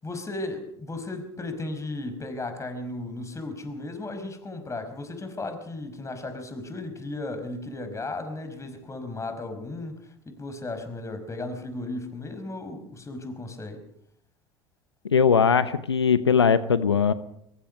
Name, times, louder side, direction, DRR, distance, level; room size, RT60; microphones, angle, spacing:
voice 1, 0.0-13.8, left 2 dB, 20° left, 8 dB, 5.3 m, -35 dB
voice 2, 15.0-17.1, left 6 dB, 90° left, 14 dB, 0.8 m, -20 dB
23.0 x 23.0 x 5.3 m, 0.73 s
hypercardioid pair, 70°, 14 cm